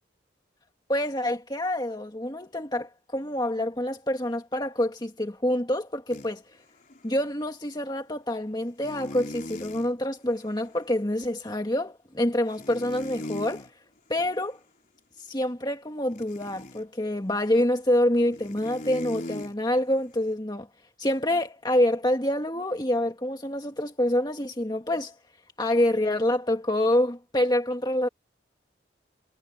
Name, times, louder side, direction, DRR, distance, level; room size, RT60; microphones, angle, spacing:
voice 1, 0.9-6.4 7.0-13.7 14.1-14.6 15.2-20.7 21.0-25.1 25.6-28.1, left 1 dB, 25° left, 1.9 m, -26 dB
sound 1, 6.1-6.3 6.9-7.0 8.8-9.9 12.6-13.7 16.1-16.8 18.3-19.5, left 1 dB, 45° left, 4.6 m, -38 dB
head